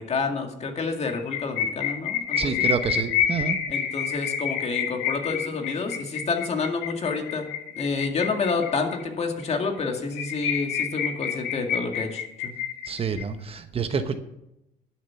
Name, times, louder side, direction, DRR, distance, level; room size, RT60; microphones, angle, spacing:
voice 1, 0.0-2.7 3.7-7.5 7.8-12.5, left 4 dB, 40° left, 4 dB, 2.0 m, -29 dB
sound 1, 1.1-9.0 9.4-9.5 9.8-9.9 10.1-13.2, left 8 dB, 85° left, 1.9 m, -28 dB
voice 2, 2.4-3.6 12.9-14.2, right 5 dB, 35° right, 9 dB, 1.0 m, -28 dB
12.0 x 7.4 x 5.8 m, 0.86 s
cardioid pair, 110°, 17 cm